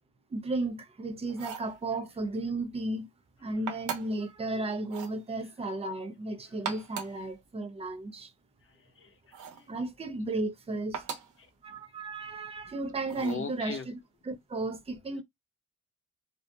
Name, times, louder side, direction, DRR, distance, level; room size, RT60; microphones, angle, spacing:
voice 1, 0.3-3.1 3.4-8.3 9.7-11.2 11.6-14.0 14.2-15.2, right 2 dB, 20° right, 0.5 m, -34 dB
sound 1, 1.3-1.7 3.7-4.2 4.8-5.2 6.5-7.2 9.3-9.7 10.9-11.4 13.1-13.5, right 7 dB, 75° right, 0.9 m, -39 dB
voice 2, 8.6-9.7 11.7-11.8 13.1-13.9, left 5 dB, 40° left, 0.9 m, -41 dB
2.7 x 2.4 x 2.2 m
cardioid pair, 110°, 31 cm